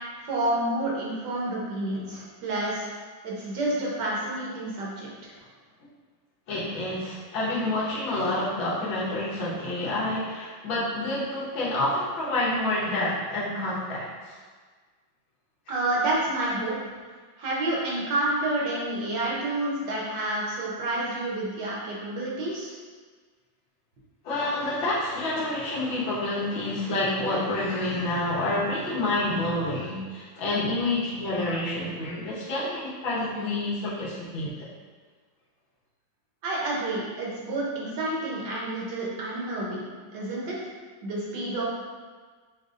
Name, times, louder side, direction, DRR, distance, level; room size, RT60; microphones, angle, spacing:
voice 1, 0.2-2.9 3.2-5.3 15.7-16.7 17.4-22.7 36.4-39.9 40.1-40.6 41.0-41.6, right 1 dB, 65° right, -4 dB, 1.4 m, -29 dB
voice 2, 6.5-14.4 24.2-34.7, left 1 dB, 80° left, -7 dB, 1.8 m, -28 dB
6.4 x 2.5 x 2.5 m, 1.5 s
omnidirectional pair, 2.1 m